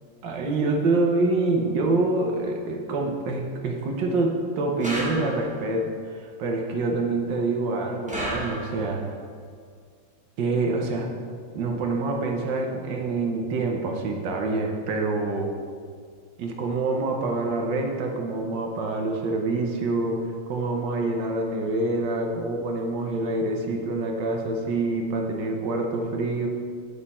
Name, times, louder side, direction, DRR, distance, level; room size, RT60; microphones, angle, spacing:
voice 1, 0.2-9.0 10.4-11.1 11.5-15.5 16.4-20.2 20.5-26.5, right 2 dB, 80° right, 2 dB, 1.6 m, -26 dB
sound 1, 4.8-5.7 8.1-9.0, right 1 dB, 5° right, 1.3 m, -32 dB
9.3 x 6.6 x 4.2 m, 2.1 s
omnidirectional pair, 2.0 m